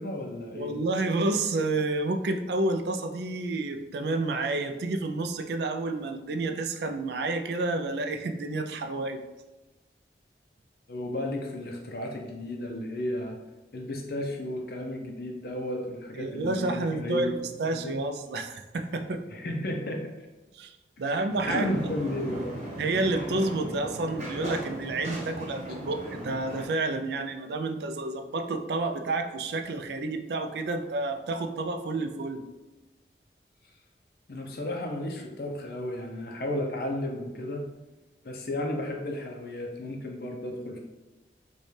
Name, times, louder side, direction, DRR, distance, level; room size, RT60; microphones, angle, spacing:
voice 1, 0.0-0.8 10.9-13.4 13.7-17.4 17.7-18.0 19.3-20.0 21.5-22.5 34.3-37.6 38.2-40.8, left 1 dB, 60° left, 1 dB, 0.5 m, -33 dB
voice 2, 0.5-9.2 16.2-19.2 20.5-21.7 22.8-32.4, right 2 dB, 70° right, 7 dB, 0.4 m, -30 dB
sound 1, 21.3-26.6, equal, 40° right, 1.0 m, -37 dB
5.1 x 2.3 x 3.2 m, 1.1 s
head